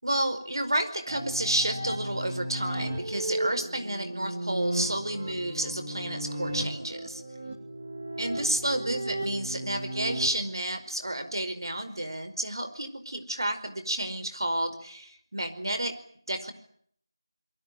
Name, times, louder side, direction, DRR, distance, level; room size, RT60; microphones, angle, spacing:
voice 1, 0.0-7.2 8.2-16.0 16.3-16.5, right 1 dB, 60° right, 9 dB, 5.0 m, -31 dB
sound 1, 1.1-10.3, right 1 dB, 15° right, 2.8 m, -35 dB
26.0 x 23.0 x 9.2 m, 0.64 s
figure-of-eight pair, 180°, 2 cm